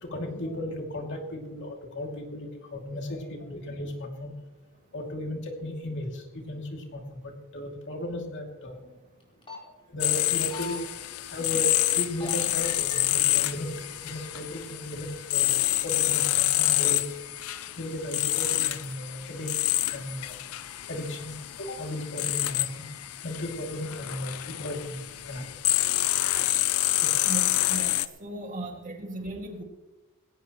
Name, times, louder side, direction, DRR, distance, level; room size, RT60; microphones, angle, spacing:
voice 1, 0.0-4.3 4.9-8.8 9.9-11.0 11.3-13.7 14.0-15.6 15.8-17.2 17.8-20.4 20.8-22.9 23.2-25.0 25.3-25.5 27.0-27.1, left 1 dB, 55° left, 1 dB, 2.6 m, -35 dB
sound 1, 9.2-9.6 10.2-10.8 12.0-12.3 12.6-13.0 13.7-14.2 14.6-14.7, left 4 dB, 25° left, 4.1 m, -39 dB
sound 2, 10.0-28.1, left 16 dB, 75° left, 0.6 m, -28 dB
voice 2, 27.2-29.6, right 1 dB, 35° right, 2 dB, 2.2 m, -37 dB
19.0 x 17.0 x 3.1 m, 1.1 s
head